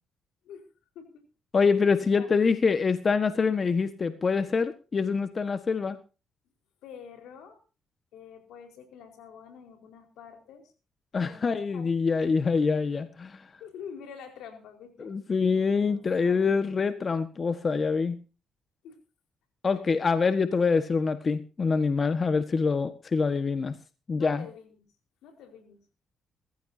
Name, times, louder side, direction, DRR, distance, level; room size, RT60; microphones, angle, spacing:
voice 1, 0.9-1.3 2.0-2.3 6.8-7.6 8.1-10.7 11.1-12.1 13.6-15.1 15.9-16.6 18.8-19.0 19.7-19.8 24.1-24.9 25.2-25.8, left 7 dB, 85° left, 5 dB, 4.5 m, -47 dB
voice 2, 1.5-6.0 11.1-13.5 15.0-18.2 19.6-23.7 24.1-24.4, left 5 dB, 35° left, 10 dB, 1.4 m, -25 dB
22.0 x 15.0 x 2.8 m, 0.34 s
cardioid pair, 90°, 0 cm